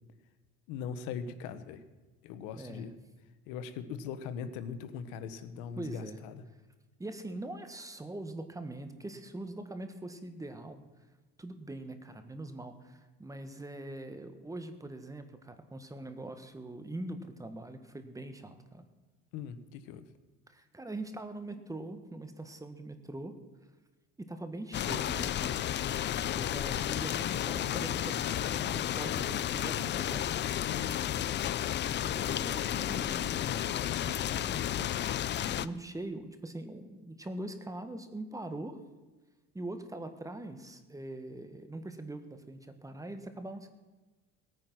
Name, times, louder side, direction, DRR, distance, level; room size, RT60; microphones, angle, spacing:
voice 1, 0.7-1.8 2.2-2.9 3.5-6.4 19.3-20.1 30.7-31.3, left 7 dB, 90° left, 11 dB, 1.1 m, -40 dB
voice 2, 2.6-2.9 5.7-6.2 7.0-10.8 11.4-18.9 20.5-23.3 24.2-25.6 26.3-30.3 32.0-35.1 35.4-38.8 39.5-43.7, right 2 dB, 10° right, 8 dB, 1.4 m, -42 dB
sound 1, 24.7-35.7, left 11 dB, 40° left, 0.5 m, -32 dB
18.5 x 9.3 x 6.1 m, 1.2 s
cardioid pair, 110°, 30 cm